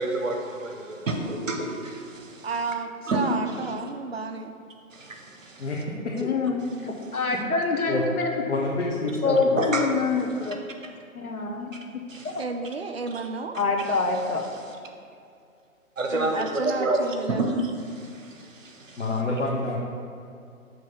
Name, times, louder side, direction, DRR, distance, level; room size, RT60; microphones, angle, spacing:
voice 1, 0.0-2.5 3.1-3.3 4.9-5.7 9.6-9.9 10.4-10.5 12.1-12.3 16.0-19.1, right 2 dB, 65° right, 2 dB, 1.0 m, -29 dB
voice 2, 2.4-4.5 12.4-13.6 16.1-17.4, right 4 dB, 45° right, 5 dB, 0.5 m, -31 dB
voice 3, 6.2-8.4 9.2-10.6 11.1-11.7 12.2-12.3 13.6-14.4, left 4 dB, 80° left, 2 dB, 1.0 m, -25 dB
voice 4, 8.5-9.6 19.0-19.8, left 2 dB, 55° left, -5 dB, 1.0 m, -27 dB
6.8 x 3.1 x 5.5 m, 2.4 s
figure-of-eight pair, 135°, 42 cm